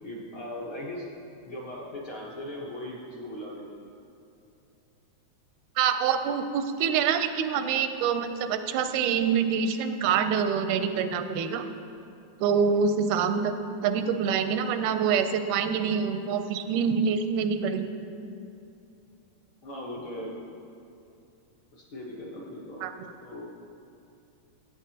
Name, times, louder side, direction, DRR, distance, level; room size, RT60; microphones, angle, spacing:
voice 1, 0.0-1.0 1.5-3.8 19.6-20.4 21.7-22.9 23.2-23.6, left 1 dB, 55° left, -5 dB, 1.6 m, -39 dB
voice 2, 5.8-11.7 12.4-17.9 22.8-22.9, right 6 dB, 85° right, 9 dB, 2.0 m, -26 dB
14.5 x 8.7 x 2.8 m, 2.7 s
omnidirectional pair, 3.5 m